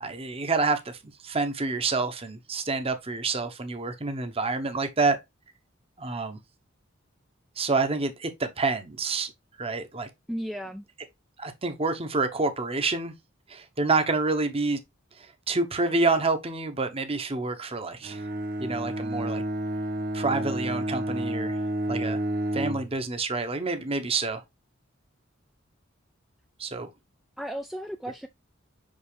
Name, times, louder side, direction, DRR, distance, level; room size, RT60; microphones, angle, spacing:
voice 1, 0.0-1.0 1.2-5.2 6.0-6.4 7.6-9.3 9.6-10.1 11.4-13.1 13.5-14.8 15.2-18.2 18.6-19.4 20.1-21.6 21.9-22.2 22.5-24.4 26.6-26.9, right 3 dB, 30° right, 0.9 m, -28 dB
voice 2, 10.3-10.9 27.4-28.3, equal, ahead, 0.3 m, -34 dB
Bowed string instrument, 18.0-22.9, right 1 dB, 50° right, 1.3 m, -30 dB
5.6 x 5.4 x 3.2 m
head